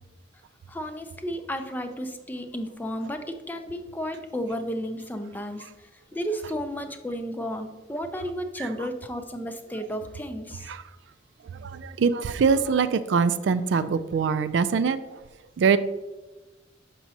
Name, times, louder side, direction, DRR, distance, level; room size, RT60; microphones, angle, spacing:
voice 1, 0.7-10.7, equal, 10° left, 7 dB, 0.4 m, -33 dB
voice 2, 11.5-15.2 15.6-15.8, right 5 dB, 70° right, 11 dB, 0.3 m, -23 dB
6.2 x 5.8 x 2.7 m, 1.1 s
head